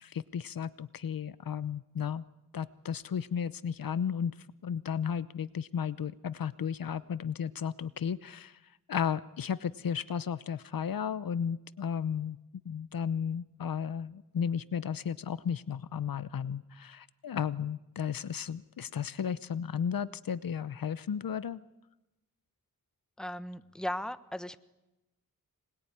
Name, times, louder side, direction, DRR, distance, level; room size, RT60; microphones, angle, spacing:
voice 1, 0.0-2.2 2.5-4.3 4.6-8.6 8.9-12.4 12.6-21.6, left 7 dB, 75° left, 16 dB, 0.9 m, -34 dB
voice 2, 23.2-24.6, left 1 dB, ahead, 12 dB, 1.2 m, -37 dB
25.5 x 21.0 x 9.9 m, 0.98 s
wide cardioid pair, 85°, 35 cm